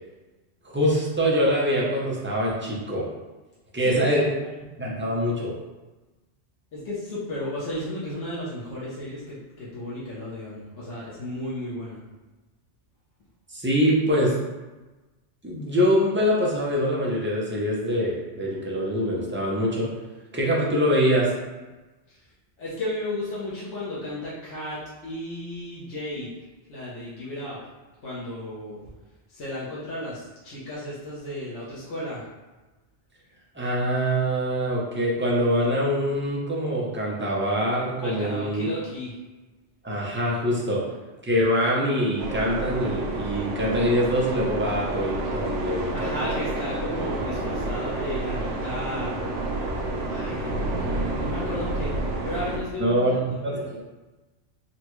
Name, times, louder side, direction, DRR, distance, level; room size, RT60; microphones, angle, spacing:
voice 1, 0.7-3.1 3.7-4.2 4.8-5.5 13.5-14.4 15.4-19.9 20.3-21.3 33.5-38.7 39.8-40.8 41.2-46.4 52.8-53.2 53.4-53.8, equal, 20° right, -5 dB, 0.3 m, -24 dB
voice 2, 3.8-4.5 6.7-12.0 22.1-22.2 22.6-26.3 26.7-27.6 28.0-28.9 29.3-32.3 38.0-39.2 45.9-49.1 50.0-53.6, left 1 dB, 85° left, -8 dB, 1.1 m, -34 dB
sound 1, 42.2-52.6, right 2 dB, 90° right, 1.0 m, -29 dB
3.9 x 2.2 x 3.0 m, 1.2 s
omnidirectional pair, 1.2 m